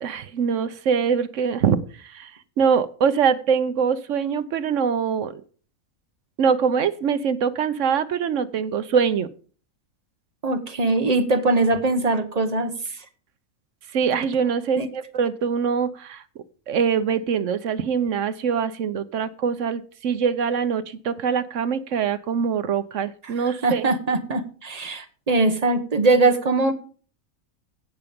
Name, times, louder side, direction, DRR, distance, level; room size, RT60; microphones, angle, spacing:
voice 1, 0.0-2.3 2.6-5.4 6.4-9.3 13.9-16.2 16.7-23.9, right 6 dB, 65° right, 13 dB, 1.1 m, -23 dB
voice 2, 10.4-13.0 14.8-14.9 23.2-23.3 23.6-26.7, right 3 dB, 30° right, 7 dB, 1.2 m, -21 dB
16.5 x 5.9 x 5.2 m, 0.42 s
omnidirectional pair, 1.5 m